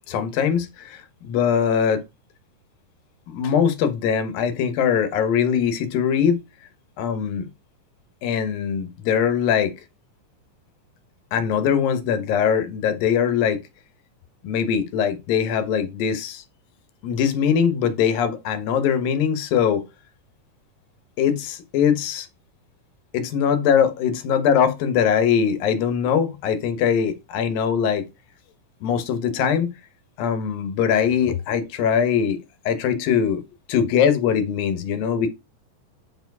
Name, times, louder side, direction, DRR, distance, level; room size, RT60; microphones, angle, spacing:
voice 1, 0.1-2.0 3.3-6.4 7.0-7.5 8.2-9.7 11.3-13.6 14.4-16.4 17.0-19.8 21.2-22.3 23.1-28.1 28.8-29.7 30.2-33.4 33.7-35.3, left 7 dB, 90° left, 2.9 m, -21 dB
8.8 x 4.7 x 4.7 m
omnidirectional pair, 3.9 m